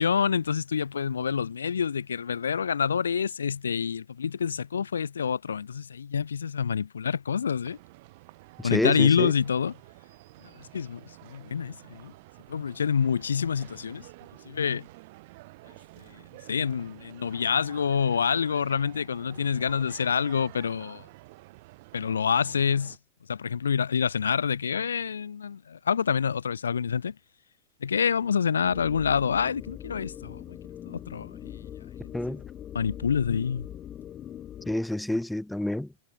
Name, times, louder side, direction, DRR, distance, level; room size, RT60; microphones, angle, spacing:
voice 1, 0.0-7.8 8.6-9.7 10.7-12.1 12.5-14.0 14.4-14.9 16.1-16.2 16.5-21.0 21.9-23.0 23.3-27.1 27.8-30.6 30.9-31.6 32.0-32.2 32.7-33.7, left 7 dB, 70° left, 3.0 m, -27 dB
sound 1, 7.6-23.0, right 22 dB, 50° right, 4.3 m, -50 dB
voice 2, 8.6-9.3 32.1-32.4 34.7-35.9, left 1 dB, 5° left, 0.7 m, -28 dB
sound 2, 28.6-34.8, left 10 dB, 30° left, 1.8 m, -42 dB
figure-of-eight pair, 90°, 0 cm